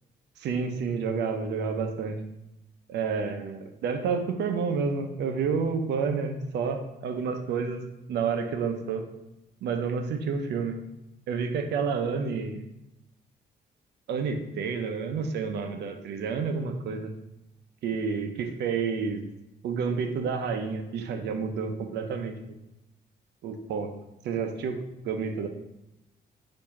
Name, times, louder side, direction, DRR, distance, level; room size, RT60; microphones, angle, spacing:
voice 1, 0.4-2.2 2.9-7.8 8.1-9.1 9.6-10.8 11.3-12.6 14.1-17.1 17.8-19.2 19.6-22.6 23.4-23.9 24.2-24.8 25.0-25.5, right 5 dB, 80° right, 6 dB, 0.6 m, -29 dB
4.6 x 2.7 x 4.1 m, 0.92 s
cardioid pair, 155°, 18 cm